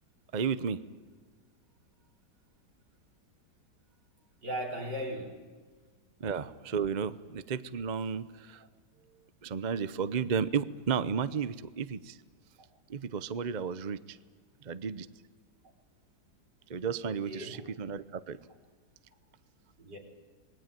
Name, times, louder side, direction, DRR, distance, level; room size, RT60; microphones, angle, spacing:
voice 1, 0.3-0.8 6.2-8.6 9.4-12.2 12.9-14.2 14.6-15.1 16.7-18.4, right 6 dB, 40° right, 14 dB, 0.6 m, -33 dB
voice 2, 4.4-5.5 17.0-17.6 19.8-20.0, equal, 75° right, 1 dB, 4.9 m, -37 dB
27.5 x 20.5 x 9.2 m, 1.5 s
omnidirectional pair, 1.9 m